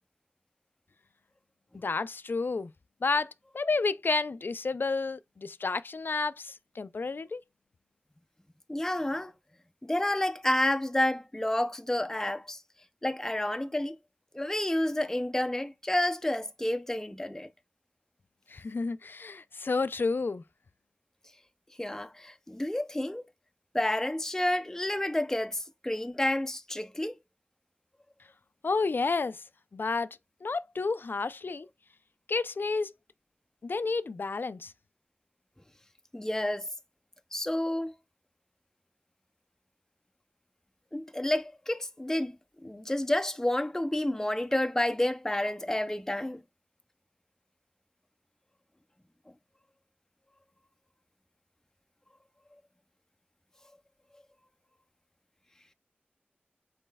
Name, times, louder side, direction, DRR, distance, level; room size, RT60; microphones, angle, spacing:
voice 1, 1.7-2.7 3.0-7.4 18.5-20.4 28.6-29.4 29.7-30.1 30.4-31.7 32.3-32.9 33.6-34.7, left 4 dB, 70° left, 0.3 m, -30 dB
voice 2, 8.7-9.3 9.8-12.6 13.0-14.0 14.3-17.5 21.8-23.2 23.7-27.2 36.1-36.7 37.3-37.9 40.9-42.4 42.6-46.4, left 1 dB, 15° left, 0.5 m, -30 dB
5.3 x 4.2 x 2.2 m
wide cardioid pair, 60°, 4 cm